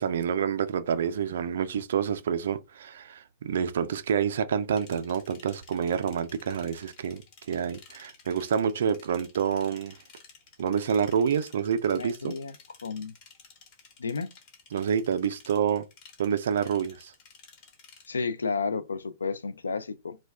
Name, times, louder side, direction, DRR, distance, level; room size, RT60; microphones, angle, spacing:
voice 1, 0.0-10.0 10.6-12.3 14.7-15.8 16.2-17.1, right 7 dB, 65° right, 0.4 m, -28 dB
sound 1, 4.8-18.1, left 5 dB, 45° left, 1.0 m, -54 dB
voice 2, 11.9-12.5 12.8-13.1 14.0-14.3 18.1-20.2, left 4 dB, 80° left, 0.3 m, -32 dB
2.3 x 2.2 x 3.3 m
figure-of-eight pair, 105°, 0 cm